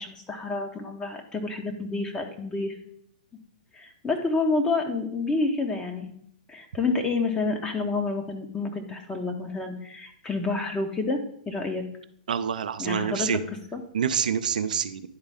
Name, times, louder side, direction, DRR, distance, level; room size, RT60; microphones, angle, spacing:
voice 1, 0.0-2.8 3.7-6.1 6.5-11.8 12.8-13.4 13.7-13.8, left 3 dB, 15° left, 3 dB, 0.9 m, -29 dB
voice 2, 12.3-13.4 13.9-15.1, right 8 dB, 70° right, 11 dB, 0.5 m, -27 dB
10.5 x 4.0 x 3.5 m, 0.69 s
hypercardioid pair, 115°, 4 cm